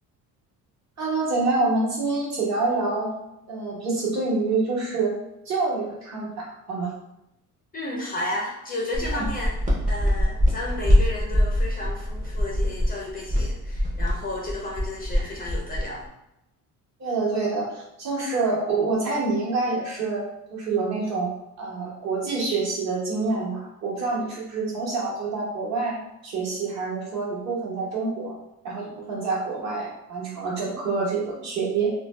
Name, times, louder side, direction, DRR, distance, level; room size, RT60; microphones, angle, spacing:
voice 1, 1.0-3.1 3.5-5.1 5.5-6.9 9.1-9.2 17.0-20.2 20.5-21.3 21.6-28.3 28.6-31.9, right 3 dB, 55° right, -5 dB, 1.0 m, -27 dB
voice 2, 7.7-9.5 9.9-16.0, left 1 dB, 25° left, -2 dB, 0.4 m, -32 dB
sound 1, 8.9-16.1, equal, 25° right, 0.6 m, -24 dB
2.5 x 2.1 x 3.1 m, 0.86 s
cardioid pair, 160°, 34 cm